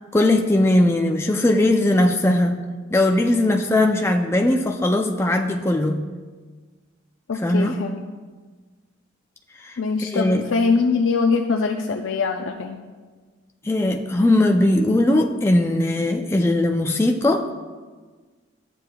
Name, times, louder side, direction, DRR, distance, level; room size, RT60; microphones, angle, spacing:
voice 1, 0.1-2.6 2.9-6.0 7.3-7.7 9.6-10.4 13.6-17.5, left 1 dB, 15° left, 3 dB, 0.4 m, -19 dB
voice 2, 7.3-8.0 9.8-12.8, left 4 dB, 75° left, 2 dB, 0.5 m, -22 dB
13.0 x 7.6 x 2.3 m, 1.4 s
head